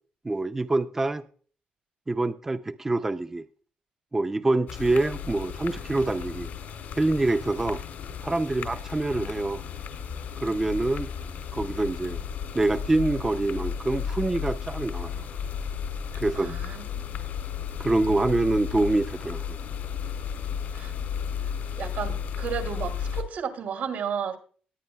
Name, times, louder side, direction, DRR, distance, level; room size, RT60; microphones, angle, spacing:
voice 1, 0.2-1.2 2.1-3.4 4.1-6.5 7.0-7.8 8.2-9.6 10.4-11.1 11.5-12.2 12.5-15.3 16.2-16.5 17.8-19.6, right 2 dB, 15° right, 0.4 m, -25 dB
sound 1, 4.7-23.2, left 7 dB, 85° left, 2.6 m, -34 dB
voice 2, 16.1-17.1 20.7-20.9 21.8-24.4, right 7 dB, 85° right, 2.1 m, -33 dB
20.0 x 9.4 x 2.2 m
wide cardioid pair, 170°, 3 cm